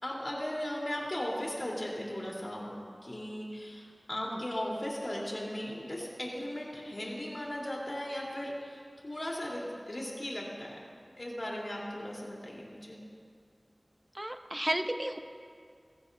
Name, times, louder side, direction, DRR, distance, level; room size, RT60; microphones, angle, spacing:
voice 1, 0.0-2.7 3.0-10.8 11.2-13.0, left 1 dB, 50° left, -4 dB, 3.9 m, -37 dB
voice 2, 14.1-15.2, right 1 dB, 25° right, 8 dB, 0.8 m, -33 dB
22.0 x 15.5 x 2.8 m, 2.2 s
wide cardioid pair, 40°, 0 cm